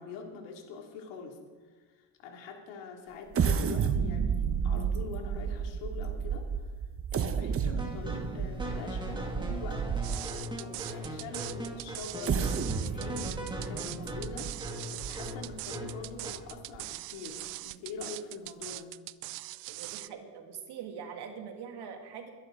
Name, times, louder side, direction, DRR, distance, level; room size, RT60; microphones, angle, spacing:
voice 1, 0.0-6.7 7.1-9.8 10.6-19.0, left 4 dB, 75° left, 2 dB, 2.9 m, -44 dB
sound 1, 3.3-10.5 11.0-11.1 12.0-15.6 16.0-16.1 16.5-16.8, right 7 dB, 30° right, 1.0 m, -32 dB
sound 2, 7.8-16.5, equal, 10° right, 2.4 m, -39 dB
sound 3, 10.0-20.1, right 22 dB, 80° right, 0.6 m, -41 dB
voice 2, 19.7-22.3, right 7 dB, 60° right, 3 dB, 2.5 m, -43 dB
21.5 x 10.5 x 3.9 m, 1.4 s
supercardioid pair, 95°, 45 cm